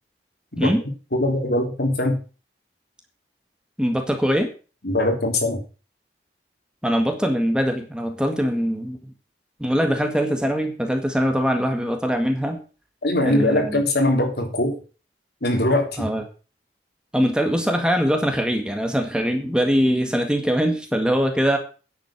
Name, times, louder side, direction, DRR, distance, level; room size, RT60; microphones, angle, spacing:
voice 1, 1.1-2.2 4.8-5.6 13.0-14.8 15.4-16.1, left 1 dB, 65° left, 3 dB, 3.5 m, -21 dB
voice 2, 3.8-4.5 6.8-9.0 9.6-12.6 13.2-13.8 16.0-16.2 17.1-21.6, equal, 5° right, 4 dB, 1.8 m, -22 dB
10.0 x 7.8 x 7.3 m, 0.35 s
head